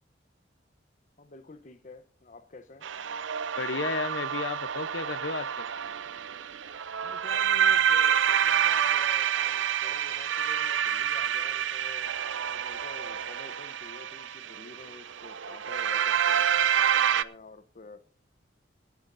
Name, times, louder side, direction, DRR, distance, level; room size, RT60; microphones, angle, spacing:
voice 1, 1.2-2.9 7.0-12.2 12.5-18.0, left 3 dB, 40° left, 0.8 m, -49 dB
sound 1, 2.8-17.2, right 9 dB, 75° right, 0.6 m, -28 dB
voice 2, 3.6-5.7, left 4 dB, 70° left, 0.8 m, -33 dB
26.5 x 9.5 x 2.6 m
head